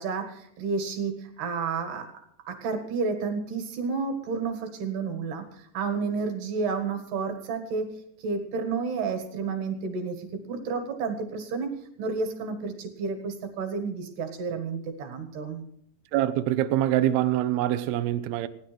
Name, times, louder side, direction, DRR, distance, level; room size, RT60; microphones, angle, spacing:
voice 1, 0.0-2.1 2.5-7.9 8.2-15.7, right 4 dB, 65° right, 3.5 m, -31 dB
voice 2, 16.1-18.5, right 13 dB, 85° right, 2.1 m, -24 dB
16.0 x 10.0 x 6.1 m
omnidirectional pair, 5.2 m